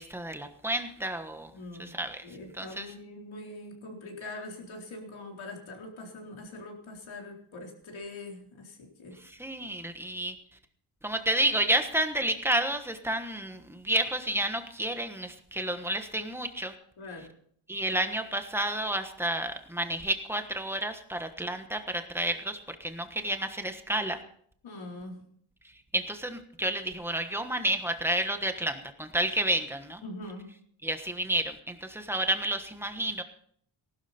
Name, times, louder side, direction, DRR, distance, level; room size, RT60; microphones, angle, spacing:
voice 1, 0.0-1.5 1.8-2.3 2.5-2.9 9.2-10.3 11.0-16.7 17.7-24.2 25.6-30.0 30.8-33.2, right 1 dB, 5° right, 7 dB, 1.3 m, -30 dB
voice 2, 1.5-1.9 2.2-9.2 17.0-17.3 24.6-25.2 30.0-30.5, left 2 dB, 70° left, 0 dB, 4.1 m, -43 dB
19.0 x 12.0 x 4.3 m, 0.63 s
wide cardioid pair, 155°, 49 cm